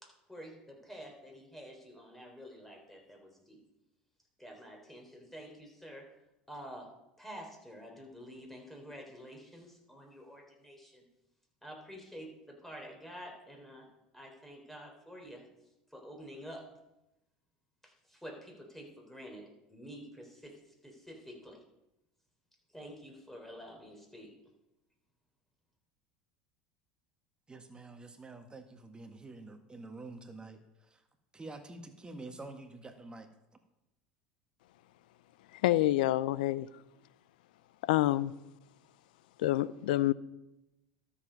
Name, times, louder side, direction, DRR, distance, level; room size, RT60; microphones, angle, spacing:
voice 1, 0.0-3.6 4.4-6.1 6.5-11.0 11.6-13.9 14.1-15.5 15.9-16.7 17.8-21.6 22.7-24.3, equal, 5° left, 4.0 m, -49 dB
voice 2, 27.5-30.6 30.9-31.0 31.3-33.3, right 2 dB, 20° right, 1.6 m, -47 dB
voice 3, 35.6-36.7 37.8-38.3 39.4-40.1, left 15 dB, 75° left, 0.5 m, -27 dB
13.0 x 7.2 x 5.2 m
hypercardioid pair, 75°, 5 cm